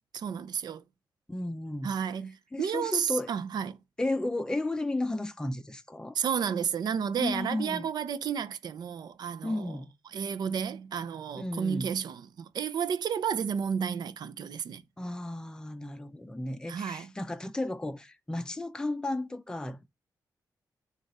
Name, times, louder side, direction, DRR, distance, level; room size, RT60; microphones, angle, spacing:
voice 1, 0.1-0.8 1.8-3.8 6.1-9.8 10.1-14.8 16.7-17.1, right 7 dB, 80° right, 0.6 m, -32 dB
voice 2, 1.3-1.9 2.5-3.3 4.0-6.2 7.2-7.9 9.4-9.9 11.4-11.9 15.0-19.9, left 2 dB, 10° left, 0.6 m, -33 dB
7.1 x 2.5 x 5.3 m
wide cardioid pair, 150°, 7 cm